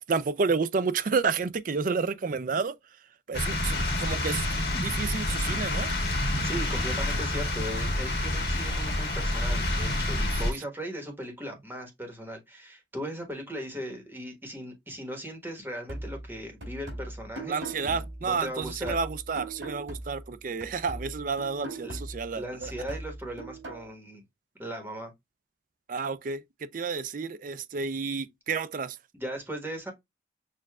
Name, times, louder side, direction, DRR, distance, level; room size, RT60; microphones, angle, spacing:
voice 1, 0.1-2.8 3.3-4.5 4.8-5.9 17.5-22.7 25.9-29.0, right 5 dB, 45° right, 0.4 m, -30 dB
sound 1, 3.3-10.5, left 1 dB, 55° left, 1.7 m, -28 dB
voice 2, 6.4-19.0 21.8-22.0 22.3-24.2 24.6-25.1 29.1-29.9, right 1 dB, 10° right, 1.2 m, -38 dB
sound 2, 15.9-20.3 20.6-23.9, right 1 dB, 90° right, 3.1 m, -40 dB
6.6 x 2.5 x 2.3 m
head